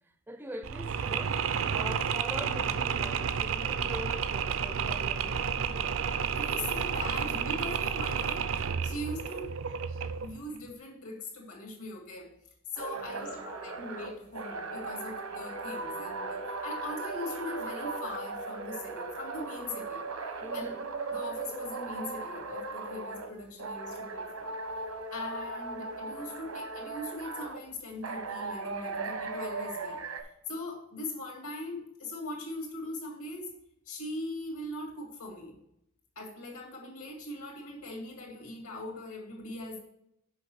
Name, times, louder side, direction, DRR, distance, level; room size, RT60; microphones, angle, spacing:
voice 1, 0.0-1.4 1.7-6.0 13.0-13.9 20.4-20.8, right 1 dB, 10° right, 0.4 m, -44 dB
Mechanisms, 0.6-10.4, right 7 dB, 65° right, 0.5 m, -31 dB
voice 2, 6.3-8.4 8.8-9.5 10.2-12.3 12.7-20.1 20.5-20.7 21.1-24.5 25.1-30.0 30.5-33.5 33.9-35.6 36.2-39.8, left 2 dB, 75° left, 2.3 m, -40 dB
sound 1, 12.8-23.3 23.6-27.6 28.0-30.2, right 3 dB, 85° right, 1.1 m, -38 dB
6.4 x 5.4 x 6.1 m
head